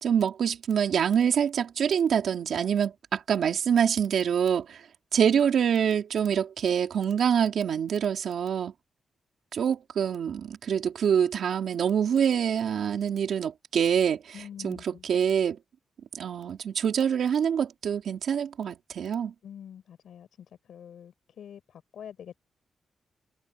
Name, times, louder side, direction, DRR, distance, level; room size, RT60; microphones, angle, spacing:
voice 1, 0.0-4.8 5.1-8.7 9.5-15.6 16.1-19.3, right 8 dB, 65° right, 3.7 m, -26 dB
voice 2, 14.3-15.1 19.4-20.3 20.7-22.4, left 9 dB, 75° left, 5.5 m, -45 dB
wide cardioid pair, 160°, 0 cm